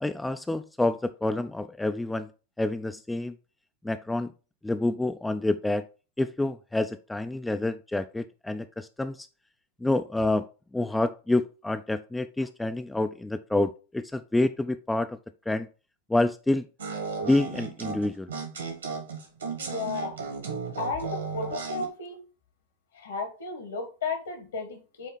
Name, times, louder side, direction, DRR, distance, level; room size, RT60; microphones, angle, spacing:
voice 1, 0.0-2.3 2.6-3.3 3.8-4.3 4.6-5.8 6.2-9.3 9.8-10.4 10.7-15.1 15.5-15.7 16.1-16.6 17.2-18.3, left 2 dB, 5° left, 10 dB, 0.3 m, -28 dB
sound 1, 16.8-21.9, right 5 dB, 70° right, 1.6 m, -35 dB
voice 2, 19.6-20.1 20.8-22.2 22.9-25.1, left 4 dB, 65° left, 6 dB, 1.7 m, -34 dB
8.2 x 2.9 x 4.1 m, 0.34 s
figure-of-eight pair, 90°, 0 cm